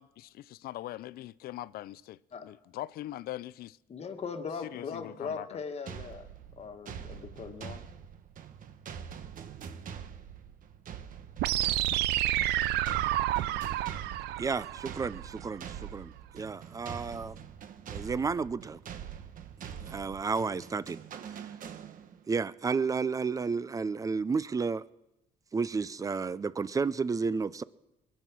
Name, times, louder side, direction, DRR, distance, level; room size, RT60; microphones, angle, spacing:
voice 1, 0.0-3.8 4.6-5.6, left 14 dB, 65° left, 0.4 m, -42 dB
voice 2, 3.9-6.3 6.6-7.8, left 5 dB, 40° left, 1.5 m, -39 dB
sound 1, 5.9-22.3, right 8 dB, 55° right, 1.1 m, -45 dB
sound 2, 11.4-15.4, right 14 dB, 85° right, 0.6 m, -29 dB
voice 3, 14.4-17.4 17.9-18.8 19.8-21.5 22.3-24.8 25.5-27.6, right 5 dB, 20° right, 0.4 m, -32 dB
21.5 x 8.4 x 6.1 m
cardioid pair, 110°, 17 cm